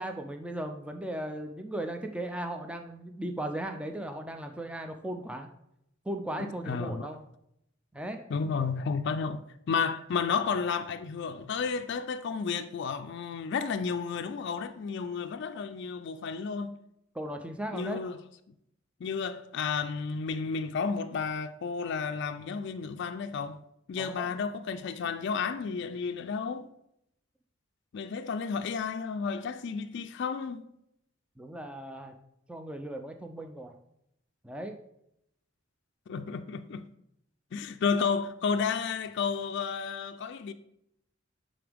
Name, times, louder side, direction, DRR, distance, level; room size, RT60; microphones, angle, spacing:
voice 1, 0.0-5.5 6.1-7.2 7.9-8.2 17.1-18.0 24.0-24.3 31.4-32.1 32.5-33.8 34.4-34.8, right 1 dB, 5° right, 0.4 m, -37 dB
voice 2, 6.4-7.1 8.3-16.8 17.7-18.2 19.0-23.6 23.9-26.7 27.9-30.6 36.1-36.8 37.5-40.5, left 5 dB, 60° left, 0.4 m, -32 dB
9.4 x 3.9 x 3.4 m
head